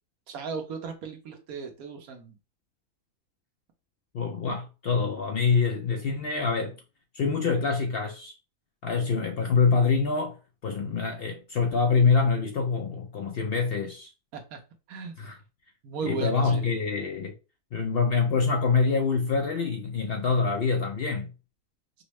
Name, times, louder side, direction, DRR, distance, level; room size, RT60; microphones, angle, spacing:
voice 1, 0.3-2.3 14.3-14.6 14.9-15.1 15.8-16.7, right 5 dB, 85° right, 1.3 m, -36 dB
voice 2, 4.1-6.8 7.1-8.3 8.8-10.4 10.6-14.1 15.2-15.4 16.0-17.3 17.7-21.3, left 5 dB, 65° left, 0.6 m, -25 dB
5.2 x 2.1 x 3.0 m
omnidirectional pair, 1.5 m